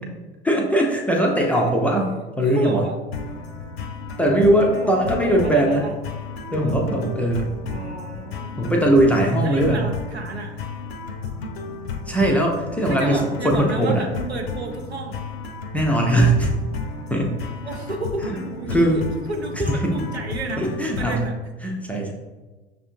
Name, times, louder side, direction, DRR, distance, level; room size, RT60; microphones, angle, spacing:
voice 1, 0.4-2.1 2.4-2.8 4.2-5.8 6.5-7.5 8.6-9.8 12.1-14.0 15.7-16.5 17.1-17.3 18.7-19.0 19.5-19.9 20.6-21.3 21.6-22.1, right 1 dB, 5° left, -1 dB, 0.4 m, -20 dB
voice 2, 2.4-3.0 4.8-5.9 7.7-8.6 9.4-10.6 12.9-15.2 17.6-19.0 19.3-20.7 21.0-21.3, right 2 dB, 85° right, 2 dB, 0.6 m, -31 dB
sound 1, 3.1-21.3, left 4 dB, 75° left, 0.6 m, -33 dB
6.4 x 2.5 x 2.6 m, 1.2 s
figure-of-eight pair, 75°, 31 cm